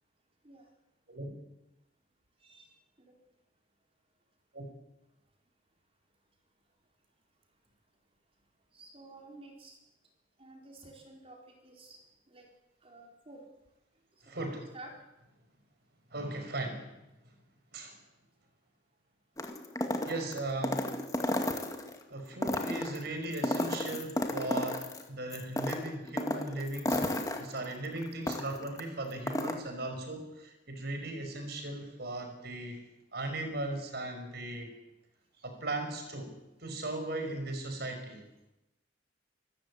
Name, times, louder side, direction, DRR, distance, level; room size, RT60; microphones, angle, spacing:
voice 1, 2.4-2.7 3.0-3.1 8.7-9.8 10.4-12.0 12.3-12.5 12.8-13.4 14.4-14.9, right 2 dB, 30° right, 1 dB, 4.4 m, -51 dB
voice 2, 14.2-14.7 16.1-16.9 17.7-18.0 20.0-20.8 22.1-27.0 27.4-32.8 33.1-34.7 35.4-36.3 36.6-38.2, right 2 dB, 60° right, 5 dB, 5.5 m, -37 dB
sound 1, 19.4-21.9 22.3-25.0 25.3-28.8 29.1-29.6, left 1 dB, 20° left, 2.2 m, -33 dB
26.5 x 14.5 x 8.6 m, 0.93 s
head